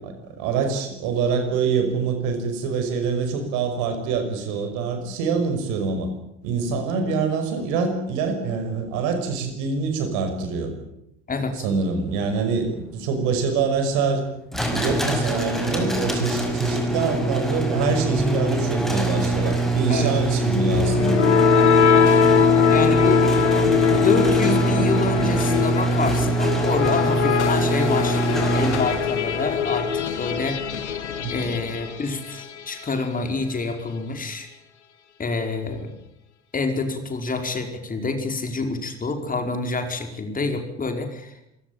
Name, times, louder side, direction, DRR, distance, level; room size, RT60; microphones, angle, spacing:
voice 1, 0.0-6.1 6.4-10.7 11.5-14.3 14.5-21.2 23.9-24.2 31.2-31.5, right 5 dB, 60° right, 7 dB, 5.9 m, -25 dB
voice 2, 11.3-11.6 19.9-20.1 22.7-23.3 24.0-30.6 31.3-34.5 35.2-35.9 36.5-41.4, left 3 dB, 25° left, 6 dB, 4.9 m, -27 dB
sound 1, 14.5-29.2, right 2 dB, ahead, 5.8 m, -23 dB
sound 2, 20.7-32.6, left 8 dB, 75° left, 1.7 m, -21 dB
27.0 x 17.5 x 9.0 m, 0.82 s
figure-of-eight pair, 65°, 34 cm